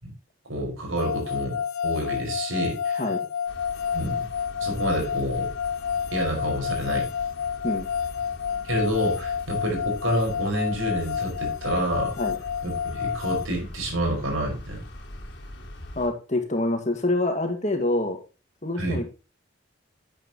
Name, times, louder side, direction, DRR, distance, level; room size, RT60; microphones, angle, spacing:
voice 1, 0.5-3.0 3.9-4.3 4.6-5.5 6.1-7.1 8.6-12.1 12.6-14.8 18.8-19.0, right 1 dB, 80° right, 1 dB, 5.3 m, -28 dB
sound 1, 1.0-13.5, left 7 dB, 85° left, 0.4 m, -29 dB
sound 2, 3.5-16.1, left 1 dB, 60° left, 2.8 m, -42 dB
voice 2, 16.0-18.2 18.6-19.1, left 2 dB, 35° left, 5 dB, 2.0 m, -26 dB
11.5 x 9.1 x 3.0 m, 0.30 s
head